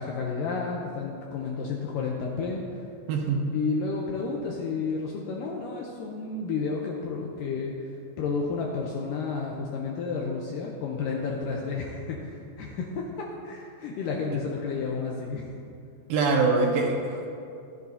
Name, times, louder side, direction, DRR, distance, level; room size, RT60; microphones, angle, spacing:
voice 1, 0.0-2.8 3.5-15.5, left 4 dB, 80° left, -1 dB, 2.0 m, -31 dB
voice 2, 3.1-3.4 16.1-17.3, right 4 dB, 75° right, 1 dB, 2.5 m, -24 dB
14.0 x 10.5 x 2.7 m, 2.5 s
omnidirectional pair, 4.6 m